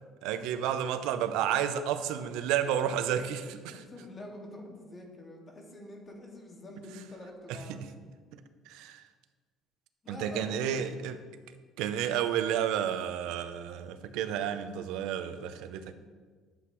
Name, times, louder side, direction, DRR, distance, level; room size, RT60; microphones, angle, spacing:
voice 1, 0.2-3.8 7.5-7.8 8.3-8.4 8.7-9.0 10.1-11.2 11.8-15.9, right 9 dB, 85° right, 10 dB, 0.6 m, -31 dB
voice 2, 3.7-7.8 10.0-11.0, left 1 dB, 30° left, 0 dB, 2.0 m, -46 dB
11.5 x 7.8 x 3.1 m, 1.5 s
cardioid pair, 100°, 0 cm